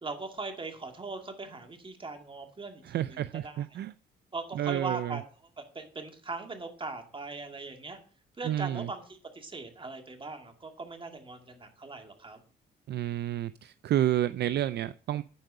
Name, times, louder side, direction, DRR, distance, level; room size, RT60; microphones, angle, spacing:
voice 1, 0.0-3.6 4.3-5.2 5.6-8.0 8.4-12.4, right 3 dB, 25° right, 5 dB, 2.2 m, -40 dB
voice 2, 2.8-3.9 4.5-5.2 8.4-8.9 12.9-15.2, right 12 dB, 60° right, 15 dB, 0.4 m, -30 dB
10.5 x 4.6 x 6.6 m, 0.41 s
cardioid pair, 90°, 20 cm